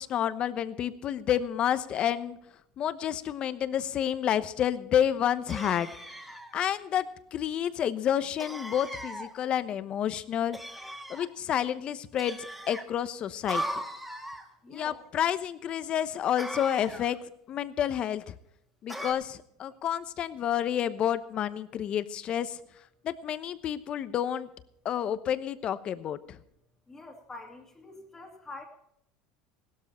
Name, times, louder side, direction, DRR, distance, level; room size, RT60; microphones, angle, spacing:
voice 1, 0.0-2.4 2.8-5.9 6.5-10.6 11.1-13.6 14.7-17.2 17.5-18.3 18.8-22.6 23.0-24.5 24.8-26.4, left 10 dB, 40° left, 13 dB, 1.0 m, -29 dB
sound 1, 5.5-6.5 8.4-9.3 10.5-11.3 12.2-12.8 13.5-14.5 16.4-17.2 18.9-19.1, right 1 dB, 5° right, 2.1 m, -38 dB
voice 2, 14.6-15.0 26.9-28.6, left 2 dB, 15° left, -1 dB, 2.3 m, -45 dB
16.5 x 12.5 x 4.4 m, 0.74 s
supercardioid pair, 120°, 3 cm